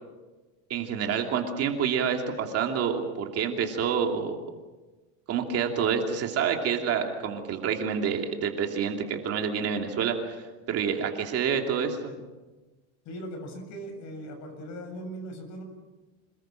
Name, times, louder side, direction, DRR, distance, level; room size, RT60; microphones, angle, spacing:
voice 1, 0.7-4.4 5.3-10.4 10.7-12.1, right 7 dB, 35° right, 3 dB, 2.8 m, -28 dB
voice 2, 13.1-15.6, right 1 dB, 40° left, 5 dB, 7.2 m, -39 dB
27.5 x 20.5 x 7.7 m, 1.2 s
cardioid pair, 160°, 40 cm